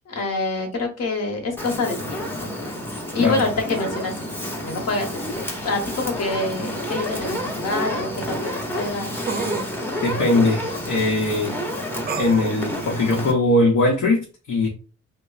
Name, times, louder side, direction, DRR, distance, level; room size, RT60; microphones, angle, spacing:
voice 1, 0.1-2.5 3.1-4.1 4.6-9.2, left 3 dB, 55° left, 1.0 m, -26 dB
Fire, 1.6-13.3, left 1 dB, 5° left, 0.7 m, -30 dB
sound 1, 6.9-7.0 9.3-9.7 12.1-12.6, right 5 dB, 35° right, 0.4 m, -29 dB
voice 2, 10.0-11.6 12.2-14.7, left 2 dB, 80° left, 0.8 m, -20 dB
2.9 x 2.0 x 2.4 m
cardioid pair, 90°, 30 cm